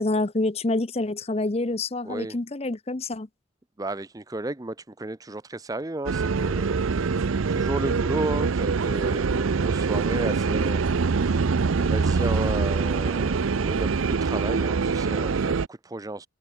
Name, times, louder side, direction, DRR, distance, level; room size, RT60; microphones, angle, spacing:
voice 1, 0.0-3.3, left 2 dB, 30° left, 0.7 m, -27 dB
voice 2, 2.0-2.4 3.8-16.3, right 2 dB, 15° right, 0.6 m, -33 dB
Turkish metro, 6.1-15.7, right 5 dB, 80° right, 0.6 m, -24 dB
head